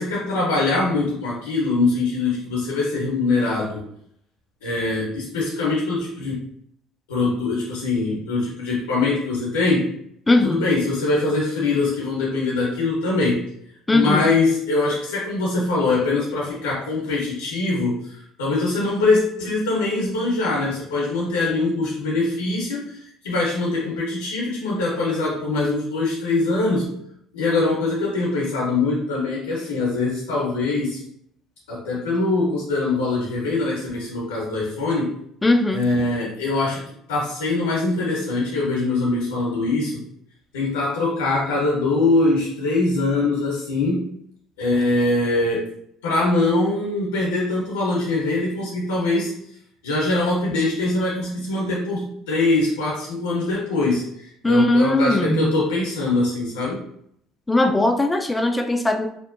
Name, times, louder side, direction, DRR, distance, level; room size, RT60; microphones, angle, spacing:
voice 1, 0.0-3.8 4.6-6.4 7.1-9.9 10.4-13.4 13.9-26.9 27.3-31.0 31.7-35.1 35.7-36.8 37.1-40.0 40.5-44.1 44.6-45.7 46.0-49.3 49.8-56.8, left 2 dB, 85° left, -4 dB, 0.7 m, -23 dB
voice 2, 10.3-10.7 13.9-14.3 35.4-35.9 54.4-55.5 57.5-59.1, left 2 dB, 15° left, 6 dB, 0.3 m, -19 dB
2.7 x 2.1 x 2.5 m, 0.70 s
hypercardioid pair, 60°, 0 cm